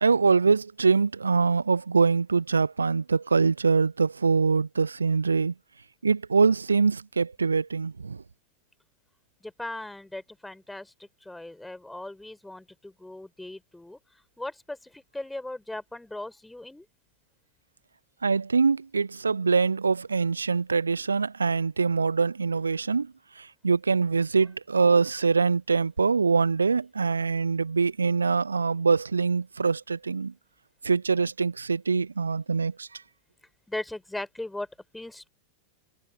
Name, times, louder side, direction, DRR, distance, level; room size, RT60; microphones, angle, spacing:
voice 1, 0.0-5.5 6.0-8.2 18.2-30.3 30.8-33.0, right 4 dB, 75° right, 0.6 m, -24 dB
voice 2, 9.4-14.0 14.4-16.9 33.7-34.7 34.9-35.3, left 1 dB, 5° left, 4.1 m, -38 dB
figure-of-eight pair, 90°, 0 cm